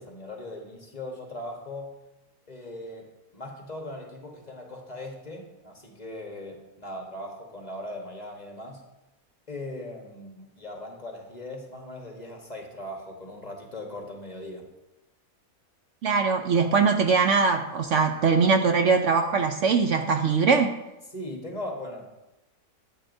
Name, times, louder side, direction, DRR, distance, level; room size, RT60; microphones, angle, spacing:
voice 1, 0.0-2.0 2.5-8.8 9.5-14.7 21.1-22.1, left 1 dB, 30° left, 1 dB, 1.2 m, -39 dB
voice 2, 16.0-20.7, right 5 dB, 65° right, 5 dB, 0.8 m, -21 dB
12.0 x 8.5 x 2.6 m, 0.96 s
omnidirectional pair, 1.6 m